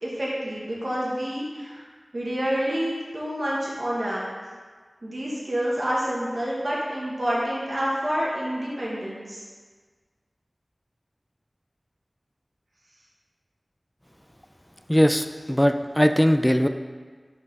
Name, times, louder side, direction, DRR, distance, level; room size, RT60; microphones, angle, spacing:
voice 1, 0.0-1.8 2.1-4.2 5.0-9.4, equal, 65° right, -6 dB, 1.3 m, -28 dB
voice 2, 14.9-16.7, equal, 5° left, 7 dB, 0.3 m, -20 dB
5.7 x 4.2 x 4.1 m, 1.5 s
wide cardioid pair, 50°, 0 cm